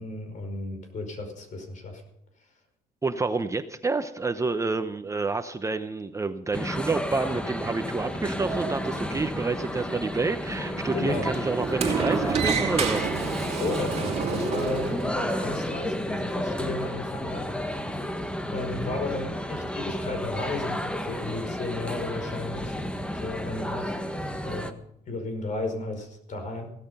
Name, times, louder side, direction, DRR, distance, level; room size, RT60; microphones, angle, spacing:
voice 1, 0.0-2.0 10.9-11.3 13.5-17.5 18.5-22.8 23.2-23.9 24.4-24.8 25.1-26.7, left 2 dB, 50° left, 6 dB, 5.2 m, -34 dB
voice 2, 3.0-13.1, right 3 dB, 20° right, 9 dB, 0.8 m, -29 dB
sound 1, 6.5-24.7, equal, 5° left, 1.4 m, -32 dB
Sliding door, 8.0-15.1, right 6 dB, 35° right, 3.0 m, -31 dB
16.5 x 13.0 x 5.5 m, 0.76 s
cardioid pair, 110°, 17 cm